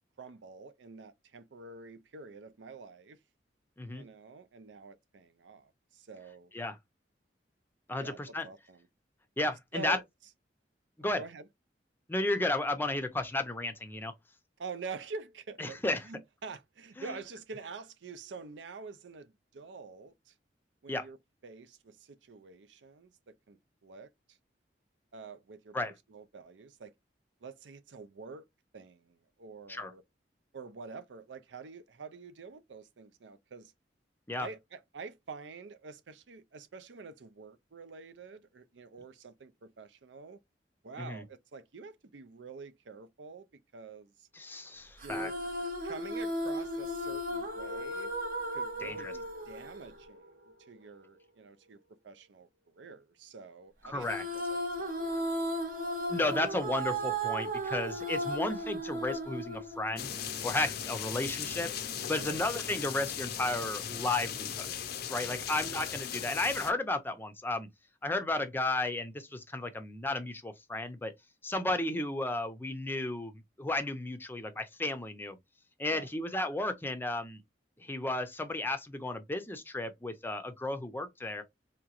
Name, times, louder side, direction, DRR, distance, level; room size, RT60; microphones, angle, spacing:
voice 1, 0.2-3.2 3.9-6.5 8.0-8.9 9.7-10.0 11.2-11.5 14.6-20.3 20.8-21.2 21.4-24.4 25.1-26.9 27.4-28.5 28.7-30.0 30.5-33.7 34.4-40.4 40.8-43.5 43.7-44.3 45.0-45.4 45.8-48.1 48.5-50.2 50.6-51.8 52.0-52.5 52.7-54.6 55.0-55.4 62.1-62.4 65.3-65.5 75.9-76.1, right 4 dB, 85° right, 0.5 m, -47 dB
voice 2, 7.9-8.5 9.4-10.0 11.0-11.2 12.1-14.1 15.6-16.1 17.0-17.2 20.9-21.1 25.7-25.9 29.7-29.9 34.3-34.5 41.0-41.2 44.3-45.3 48.8-49.1 53.8-54.2 56.1-60.1 60.4-61.7 62.1-64.7 65.1-67.7 68.0-71.1 71.4-75.4 75.8-77.4 77.8-81.4, left 2 dB, 10° left, 0.5 m, -33 dB
sound 1, 45.0-50.5 54.0-60.4, right 1 dB, 50° right, 0.9 m, -35 dB
sound 2, 59.7-64.4, equal, 20° right, 1.0 m, -52 dB
sound 3, 60.0-66.7, left 9 dB, 60° left, 0.5 m, -38 dB
3.5 x 2.9 x 2.4 m
head